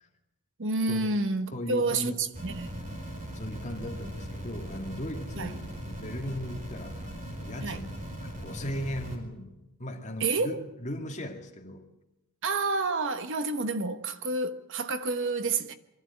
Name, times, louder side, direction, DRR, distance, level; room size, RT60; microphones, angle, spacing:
voice 1, 0.6-2.9 5.4-5.6 7.6-7.9 10.2-10.6 12.4-15.7, right 3 dB, 60° right, 1.2 m, -29 dB
voice 2, 1.5-2.2 3.3-7.9 8.2-11.9, equal, 35° left, 2.4 m, -38 dB
sound 1, 2.3-9.2, equal, 35° right, 4.7 m, -39 dB
24.0 x 13.5 x 9.6 m
head